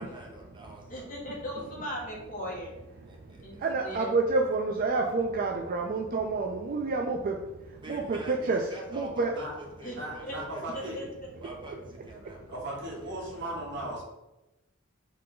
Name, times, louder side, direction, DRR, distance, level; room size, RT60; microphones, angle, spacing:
voice 1, 0.0-1.1 3.0-3.9 7.8-11.1 11.4-12.6 13.0-13.3, right 1 dB, 25° right, -1 dB, 0.9 m, -46 dB
voice 2, 0.9-2.7 3.4-3.5 3.8-4.0 9.8-9.9 10.3-10.4 10.7-11.0, equal, 40° left, -3 dB, 1.4 m, -37 dB
voice 3, 3.6-7.3 7.9-8.6 8.9-9.3, right 3 dB, 45° right, 2 dB, 0.4 m, -28 dB
voice 4, 9.9-11.0 12.5-14.0, right 1 dB, 60° right, -3 dB, 1.3 m, -37 dB
3.8 x 3.3 x 3.8 m, 0.98 s
head